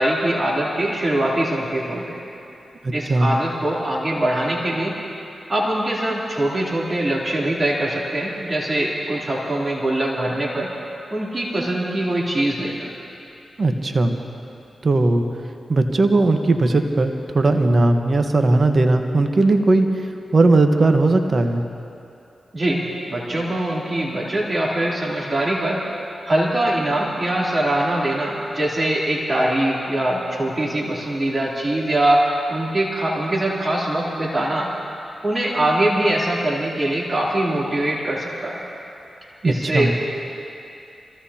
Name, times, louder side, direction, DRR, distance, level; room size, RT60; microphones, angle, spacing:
voice 1, 0.0-2.2 2.9-4.9 5.5-10.7 11.1-12.9 22.5-25.8 26.2-34.7 35.2-38.6 39.2-39.9, right 1 dB, 35° right, -4 dB, 3.2 m, -22 dB
voice 2, 13.6-14.2 14.8-15.2 15.7-20.1 20.3-21.6 39.4-39.9, right 2 dB, 55° right, 6 dB, 1.2 m, -18 dB
26.5 x 16.5 x 2.9 m, 2.7 s
supercardioid pair, 40°, 0 cm